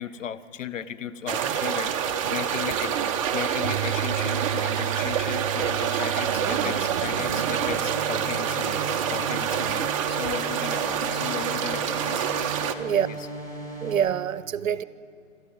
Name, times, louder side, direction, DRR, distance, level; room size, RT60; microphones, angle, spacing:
voice 1, 0.0-8.8 9.1-9.8 10.1-12.3 13.1-13.2, left 9 dB, 65° left, 1.2 m, -36 dB
sound 1, 1.3-12.7, right 8 dB, 25° right, 0.7 m, -27 dB
Bass guitar, 3.6-9.9, right 11 dB, 55° right, 0.5 m, -35 dB
sound 2, 6.3-13.9, right 1 dB, 10° left, 5.8 m, -37 dB
voice 2, 13.8-14.8, right 9 dB, 70° right, 0.9 m, -25 dB
27.0 x 13.0 x 8.9 m
hypercardioid pair, 145°, 41 cm